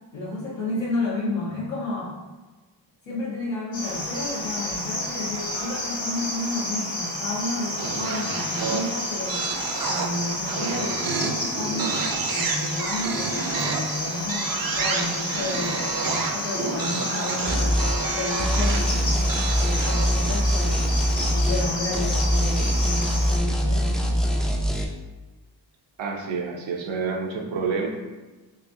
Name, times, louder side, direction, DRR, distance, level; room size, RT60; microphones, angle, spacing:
voice 1, 0.1-2.1 3.0-9.5 9.8-12.0 12.3-24.8, left 2 dB, 75° left, -8 dB, 1.2 m, -31 dB
Cricket, 3.7-23.4, left 1 dB, 50° left, 1.1 m, -31 dB
sound 1, 5.4-6.2 7.8-20.7, right 4 dB, 50° right, 0.5 m, -30 dB
sound 2, 17.5-18.0 18.4-21.7 21.9-24.8, equal, ahead, 0.3 m, -23 dB
voice 2, 26.0-27.9, right 5 dB, 85° right, 1 dB, 0.7 m, -28 dB
3.9 x 2.6 x 2.6 m, 1.2 s
cardioid pair, 65°, 45 cm